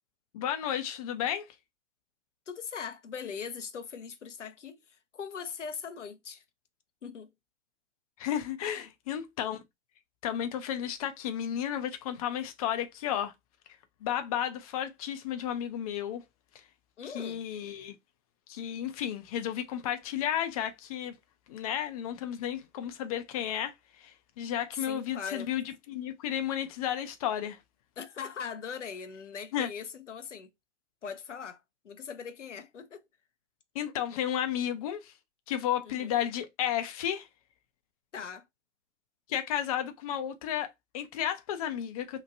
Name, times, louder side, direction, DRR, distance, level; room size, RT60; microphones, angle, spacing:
voice 1, 0.3-1.5 8.2-9.6 10.2-13.3 14.0-16.2 17.1-18.0 18.5-21.1 21.5-23.7 24.0-27.6 29.5-29.7 33.7-35.1 35.5-37.3 39.3-42.2, left 10 dB, 35° left, 0.4 m, -33 dB
voice 2, 2.5-6.4 7.0-7.3 8.8-8.9 17.0-17.4 24.7-25.5 28.0-30.5 31.0-33.0 35.8-36.2 38.1-38.5, left 6 dB, 85° left, 0.5 m, -40 dB
2.9 x 2.1 x 2.4 m
figure-of-eight pair, 110°, 36 cm